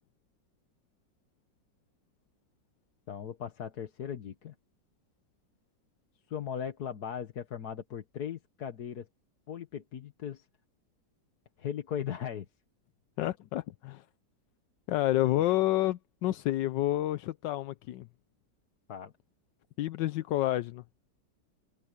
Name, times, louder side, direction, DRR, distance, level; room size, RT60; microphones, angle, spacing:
voice 1, 3.1-4.5 6.3-9.1 9.5-10.4 11.6-12.4 18.9-19.1, left 8 dB, 60° left, 1.7 m, -38 dB
voice 2, 13.2-14.0 14.9-18.1 19.8-20.8, left 15 dB, 80° left, 1.3 m, -29 dB
omnidirectional pair, 1.9 m